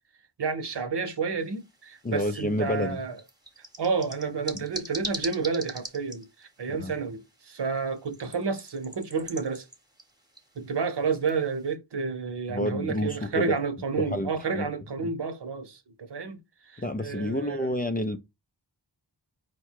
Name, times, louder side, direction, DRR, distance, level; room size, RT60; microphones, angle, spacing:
voice 1, 0.4-3.1 3.8-9.7 10.6-16.4 16.7-17.7, right 5 dB, 65° right, 0.9 m, -30 dB
sound 1, 1.4-11.7, right 1 dB, 10° right, 1.0 m, -44 dB
voice 2, 2.0-3.0 6.7-6.9 12.5-13.6 14.1-14.7 16.8-18.2, left 1 dB, 20° left, 0.4 m, -29 dB
4.8 x 2.2 x 4.5 m
wide cardioid pair, 90°, 43 cm